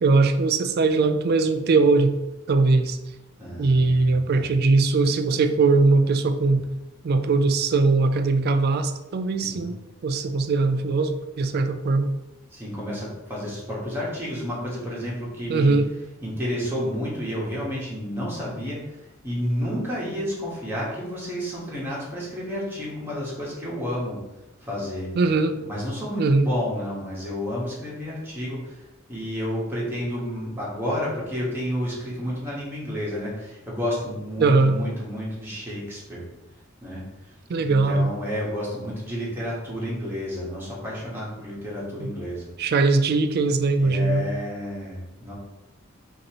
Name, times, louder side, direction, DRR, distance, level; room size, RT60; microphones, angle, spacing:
voice 1, 0.0-2.1 2.5-3.0 3.6-6.7 7.0-9.8 10.0-12.1 15.5-15.9 25.2-25.6 26.2-26.5 34.4-34.8 37.5-38.1 42.0-42.1 42.6-44.3, right 3 dB, 50° right, 8 dB, 0.3 m, -20 dB
voice 2, 3.4-4.5 9.4-9.7 12.5-15.8 16.2-18.8 19.2-24.2 24.6-25.1 25.6-28.8 29.1-36.2 36.8-37.0 37.6-42.5 43.8-45.3, equal, 10° right, -7 dB, 1.3 m, -31 dB
5.2 x 2.8 x 2.9 m, 0.98 s
head